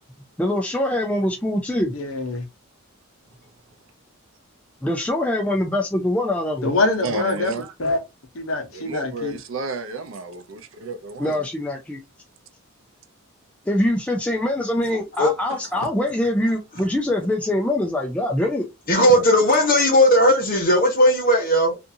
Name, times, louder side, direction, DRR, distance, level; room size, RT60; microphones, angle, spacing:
voice 1, 0.4-1.9 4.8-6.7 11.2-12.0 13.7-18.7, left 1 dB, 5° left, 0.3 m, -23 dB
voice 2, 1.9-2.4 6.6-7.5 7.8-8.0 8.3-9.3, left 2 dB, 70° left, 0.9 m, -24 dB
voice 3, 7.0-7.7 8.7-11.4 15.5-15.6 16.7-16.9 18.9-19.2, right 3 dB, 65° right, 0.5 m, -32 dB
voice 4, 14.9-15.3 18.9-21.8, equal, 40° left, 1.0 m, -17 dB
2.6 x 2.4 x 2.6 m
head